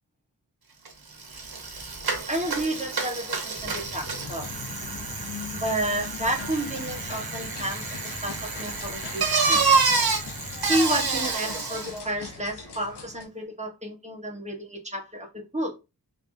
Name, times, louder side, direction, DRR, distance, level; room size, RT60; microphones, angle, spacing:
Bicycle, 0.9-1.0 1.2-12.0, right 4 dB, 65° right, 1.1 m, -28 dB
voice 1, 2.3-4.5 5.5-9.6 10.7-15.7, right 1 dB, 15° right, 1.1 m, -31 dB
sound 1, 3.6-11.3, left 4 dB, 20° left, 0.5 m, -43 dB
Tap dancers on the sidewalk, 4.2-13.2, left 4 dB, 85° left, 0.9 m, -41 dB
3.4 x 3.3 x 2.6 m
wide cardioid pair, 90°, 40 cm